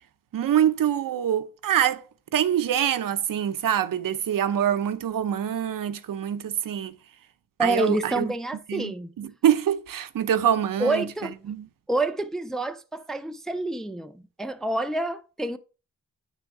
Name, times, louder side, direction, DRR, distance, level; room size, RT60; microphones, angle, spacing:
voice 1, 0.3-2.0 2.3-6.9 7.6-8.3 8.7-11.1 11.5-11.7, right 10 dB, 85° right, 0.7 m, -25 dB
voice 2, 7.6-9.1 10.8-11.3 11.9-15.6, right 2 dB, ahead, 0.3 m, -28 dB
9.6 x 3.5 x 4.6 m
wide cardioid pair, 180°, 32 cm